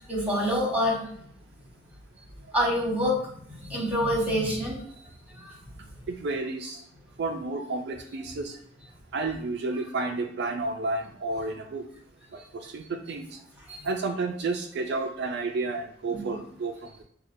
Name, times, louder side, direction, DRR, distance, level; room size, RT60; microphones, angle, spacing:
voice 1, 0.1-1.0 2.5-3.2 3.6-4.8 5.4-5.5 13.7-13.8 16.1-16.3, equal, 10° right, -3 dB, 1.2 m, -26 dB
voice 2, 6.1-6.8 7.2-8.5 9.1-11.8 12.3-12.4 12.7-13.3 13.8-17.0, right 3 dB, 60° right, 3 dB, 0.4 m, -31 dB
6.4 x 2.3 x 2.5 m, 0.64 s
head